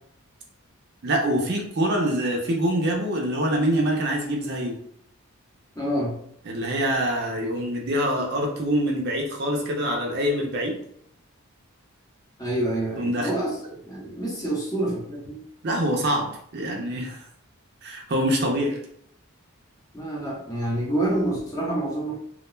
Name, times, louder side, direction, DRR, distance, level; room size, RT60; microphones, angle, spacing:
voice 1, 1.0-4.8 6.4-10.7 13.0-13.3 15.6-17.2 17.8-18.8, equal, 50° right, 0 dB, 0.5 m, -25 dB
voice 2, 5.8-6.2 12.4-13.5 13.9-15.4 19.9-22.2, right 1 dB, 15° left, -4 dB, 0.7 m, -27 dB
2.3 x 2.2 x 3.0 m, 0.66 s
head